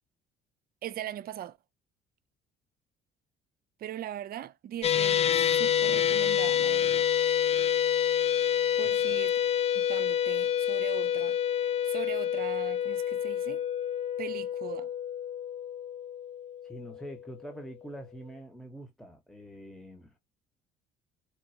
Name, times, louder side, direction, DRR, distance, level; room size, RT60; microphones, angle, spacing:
voice 1, 0.8-1.6 3.8-7.1 8.8-9.4 9.7-13.6 14.2-14.9, right 11 dB, 55° right, 0.6 m, -40 dB
sound 1, 4.8-17.2, left 9 dB, 35° left, 0.5 m, -27 dB
voice 2, 16.6-20.2, equal, ahead, 1.4 m, -45 dB
4.6 x 2.4 x 2.8 m
supercardioid pair, 70°, 18 cm